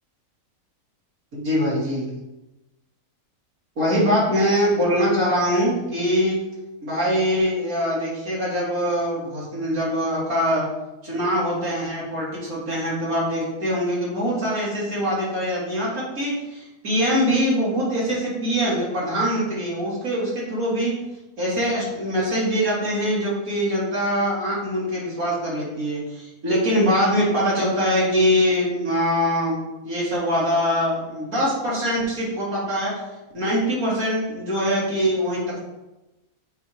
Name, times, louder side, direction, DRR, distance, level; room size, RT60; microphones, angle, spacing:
voice 1, 1.3-2.1 3.8-6.5 6.8-10.7 11.0-20.9 21.4-33.0 33.3-35.6, equal, 70° right, -7 dB, 2.8 m, -23 dB
8.7 x 3.4 x 4.5 m, 1.0 s
omnidirectional pair, 1.6 m